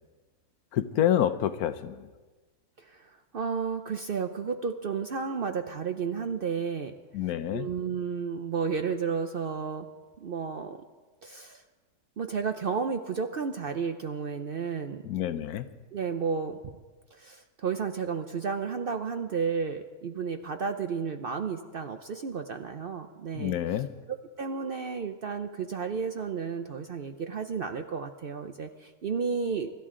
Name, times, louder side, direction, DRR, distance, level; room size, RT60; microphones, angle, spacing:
voice 1, 0.7-2.0 7.1-7.7 15.1-15.6 23.4-23.9, left 11 dB, 75° left, 11 dB, 1.1 m, -27 dB
voice 2, 2.8-6.9 7.5-9.9 10.2-10.8 11.2-11.6 12.2-15.1 15.9-16.8 17.1-23.8 24.1-29.7, right 5 dB, 60° right, 7 dB, 0.6 m, -32 dB
24.5 x 12.5 x 3.7 m, 1.3 s
omnidirectional pair, 1.6 m